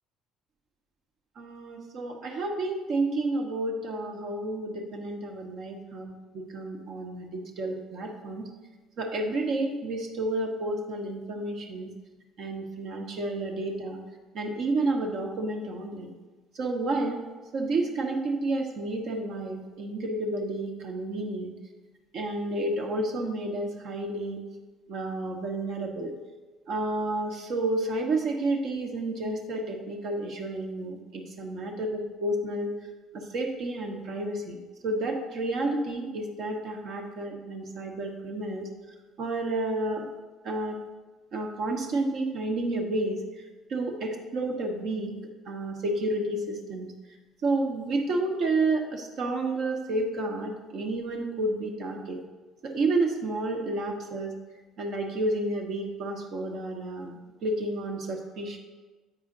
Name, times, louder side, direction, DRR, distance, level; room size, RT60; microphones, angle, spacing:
voice 1, 1.4-8.5 9.0-11.9 12.4-14.0 14.3-16.1 16.5-17.2 17.5-21.5 22.1-24.4 24.9-26.1 26.7-32.7 33.1-38.7 39.2-40.1 40.4-40.8 41.3-43.2 43.7-45.1 45.5-46.9 47.4-52.2 52.6-54.4 54.8-57.1 57.4-58.6, right 2 dB, 60° right, 2 dB, 1.1 m, -30 dB
7.7 x 5.0 x 3.9 m, 1.3 s
hypercardioid pair, 60°, 0 cm